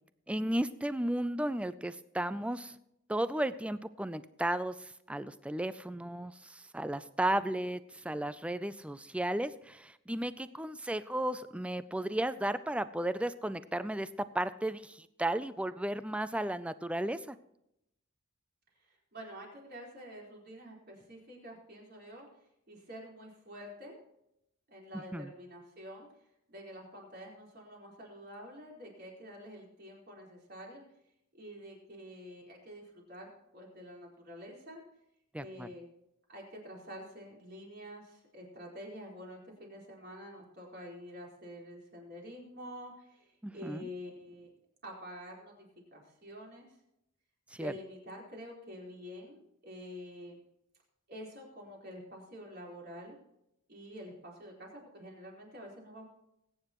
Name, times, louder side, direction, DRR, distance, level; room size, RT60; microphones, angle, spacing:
voice 1, 0.3-2.8 3.1-14.1 14.3-17.4 25.1-25.3 35.3-35.7 43.4-43.9 47.5-47.7, right 1 dB, 5° right, 13 dB, 0.3 m, -34 dB
voice 2, 18.8-22.3 22.7-24.0 24.7-26.1 26.5-30.8 31.3-34.8 35.4-35.9 36.3-44.5 44.8-45.5 45.9-46.7 47.6-50.4 51.1-53.2 53.7-56.1, equal, 45° right, -2 dB, 4.2 m, -48 dB
21.0 x 9.5 x 3.0 m, 0.81 s
head